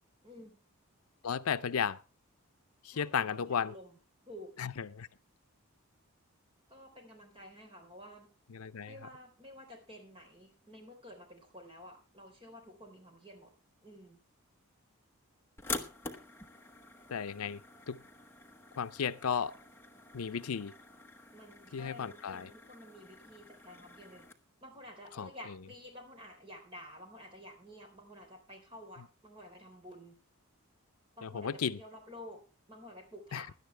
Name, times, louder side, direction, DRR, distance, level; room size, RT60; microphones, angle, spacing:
voice 1, 0.2-0.5 2.9-4.0 4.3-4.5 6.7-8.3 8.8-13.5 13.8-14.2 21.3-24.3 24.6-30.2 31.2-32.4 32.7-33.6, left 1 dB, 25° right, 3.9 m, -51 dB
voice 2, 1.2-2.0 2.8-3.7 4.6-5.1 8.5-9.0 17.1-17.6 17.9-18.0 18.8-19.5 20.1-20.7 21.7-22.5 25.2-25.6 31.2-31.8 33.3-33.4, left 7 dB, 85° left, 0.6 m, -34 dB
sound 1, 15.6-24.3, left 3 dB, 10° left, 1.0 m, -46 dB
17.0 x 11.0 x 3.3 m
head